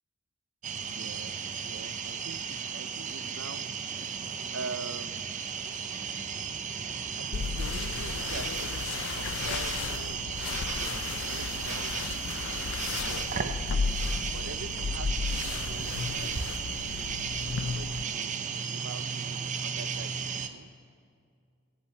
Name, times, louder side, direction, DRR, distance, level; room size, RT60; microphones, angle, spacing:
sound 1, 0.6-20.5, right 6 dB, 40° right, 0.6 m, -35 dB
voice 1, 0.7-3.6 4.5-5.7 6.4-6.5 7.2-12.4 13.0-13.6 14.3-16.5 16.8-17.1 17.4-20.7, right 4 dB, 85° right, 13 dB, 0.6 m, -45 dB
sound 2, 7.3-18.0, left 5 dB, 70° left, 0.5 m, -34 dB
16.5 x 16.5 x 4.2 m, 2.3 s
head